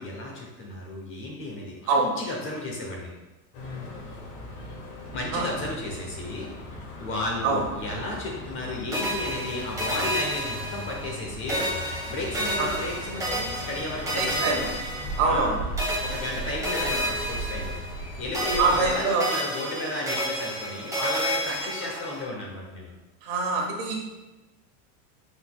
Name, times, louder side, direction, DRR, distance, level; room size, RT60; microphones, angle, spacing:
voice 1, 0.0-3.1 5.1-6.5 6.8-14.5 15.2-15.7 16.0-17.8 18.2-22.9, left 2 dB, 30° left, -1 dB, 0.8 m, -33 dB
sound 1, 3.5-19.0, equal, 50° left, 1.3 m, -38 dB
sound 2, 8.9-11.2 11.5-15.5 15.8-18.1 18.3-22.2, equal, 10° right, 1.1 m, -31 dB
voice 2, 14.1-14.7 15.2-15.6 18.6-19.3 23.2-24.0, right 4 dB, 50° right, 0 dB, 1.2 m, -24 dB
5.5 x 4.0 x 2.2 m, 1.1 s
supercardioid pair, 145°, 43 cm